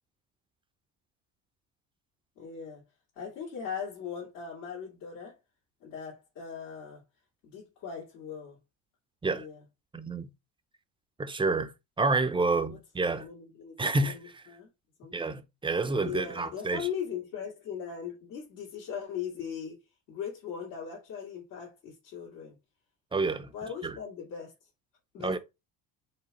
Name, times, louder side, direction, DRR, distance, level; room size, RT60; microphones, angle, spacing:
voice 1, 2.4-2.8 3.2-5.4 5.8-7.0 7.4-8.6 9.3-9.6 12.7-12.8 13.1-14.7 15.0-15.3 16.0-19.8 20.1-22.6 23.5-24.5 25.1-25.4, left 7 dB, 90° left, 2.2 m, -39 dB
voice 2, 9.9-10.3 11.2-11.7 12.0-13.3 13.8-14.4 15.1-16.9 23.1-23.5 23.8-24.0 25.2-25.4, right 3 dB, 10° right, 0.4 m, -29 dB
4.7 x 2.4 x 4.1 m
supercardioid pair, 90°, 47 cm